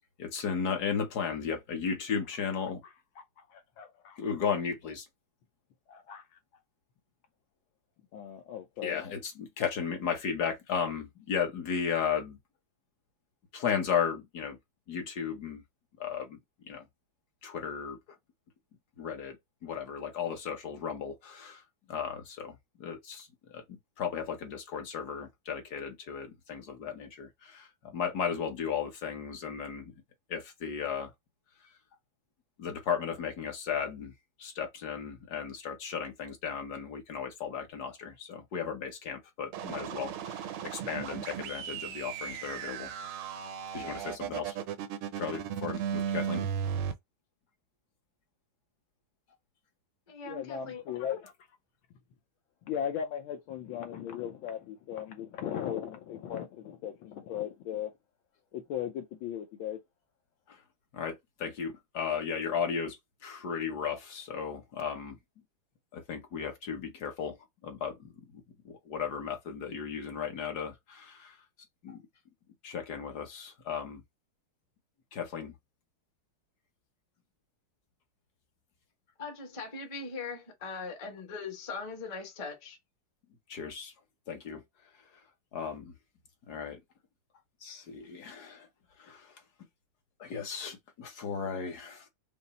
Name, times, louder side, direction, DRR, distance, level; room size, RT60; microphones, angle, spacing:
voice 1, 0.2-2.8 4.2-5.1 8.8-12.4 13.5-14.6 14.9-15.6 16.0-16.4 16.7-16.8 17.4-18.0 19.0-19.4 19.6-21.6 21.9-22.5 22.8-23.6 24.0-29.9 30.3-31.1 32.6-34.1 34.4-42.9 43.7-44.6 45.2-46.4 60.5-60.6 60.9-65.2 65.9-67.4 67.6-71.4 71.8-72.0 72.6-74.0 75.1-75.5 83.5-83.9 84.3-84.6 85.5-85.9 86.5-86.8 87.6-88.7 89.0-89.3 90.2-92.1, left 7 dB, 55° left, 1.4 m, -35 dB
voice 2, 2.5-4.4 5.9-6.3 8.1-9.0 50.2-51.3 52.6-57.9 58.5-59.8, left 9 dB, 75° left, 1.4 m, -38 dB
sound 1, 39.5-46.9, right 8 dB, 80° right, 1.5 m, -36 dB
voice 3, 50.1-50.8 79.2-82.8, left 4 dB, 25° left, 0.8 m, -40 dB
5.4 x 2.0 x 4.0 m
omnidirectional pair, 2.4 m